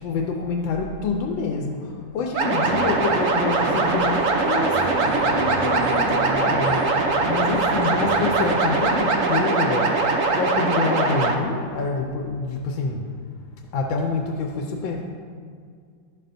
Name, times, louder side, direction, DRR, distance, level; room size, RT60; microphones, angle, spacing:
voice 1, 0.0-13.1 13.7-15.0, left 4 dB, 80° left, 2 dB, 1.3 m, -27 dB
sound 1, 2.3-11.3, right 3 dB, 85° right, 0.6 m, -22 dB
sound 2, 2.6-9.1, right 3 dB, 65° right, 1.0 m, -32 dB
11.0 x 6.5 x 2.6 m, 2.1 s
omnidirectional pair, 2.2 m